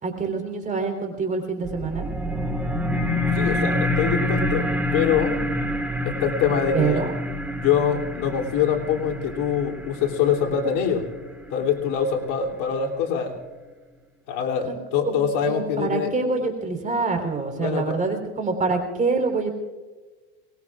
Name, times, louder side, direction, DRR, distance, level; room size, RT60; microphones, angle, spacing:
voice 1, 0.0-2.1 6.7-7.1 14.7-14.8 15.1-19.5, right 4 dB, 20° right, 3 dB, 3.9 m, -26 dB
sound 1, 1.6-12.6, left 1 dB, 5° right, 1.4 m, -27 dB
voice 2, 3.4-4.7 4.9-5.4 6.0-7.0 7.6-11.0 11.5-13.3 14.3-16.1 17.5-18.0, left 7 dB, 55° left, 0 dB, 3.1 m, -24 dB
23.5 x 20.5 x 2.5 m, 1.3 s
supercardioid pair, 115°, 35 cm